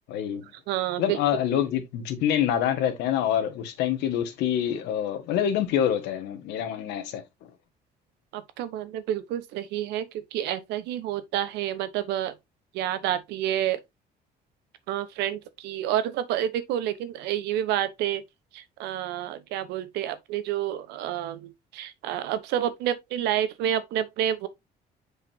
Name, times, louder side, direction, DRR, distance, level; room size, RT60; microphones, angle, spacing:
voice 1, 0.1-0.4 1.0-7.2, left 10 dB, 85° left, 1.6 m, -26 dB
voice 2, 0.7-1.2 8.3-12.3 12.7-13.8 14.9-18.2 18.8-24.5, right 11 dB, 90° right, 1.0 m, -29 dB
7.0 x 5.0 x 2.7 m
cardioid pair, 110°, 17 cm